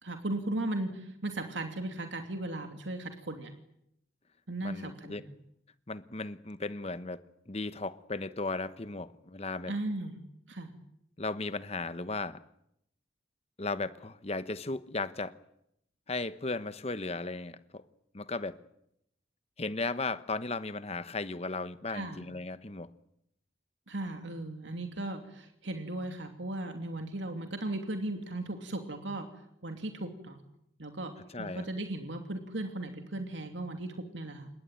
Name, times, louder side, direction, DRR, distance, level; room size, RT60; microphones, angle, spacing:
voice 1, 0.0-3.5 4.5-5.2 9.6-10.1 10.5-10.7 21.9-22.2 23.9-29.3 29.6-30.4 30.8-31.1 31.4-34.5, right 2 dB, 85° right, 2.9 m, -36 dB
voice 2, 4.6-5.2 5.9-9.7 11.2-12.4 13.6-15.3 16.1-17.8 18.1-18.6 19.6-22.9 31.3-31.7, left 3 dB, 35° left, 1.1 m, -36 dB
26.5 x 21.0 x 9.1 m
head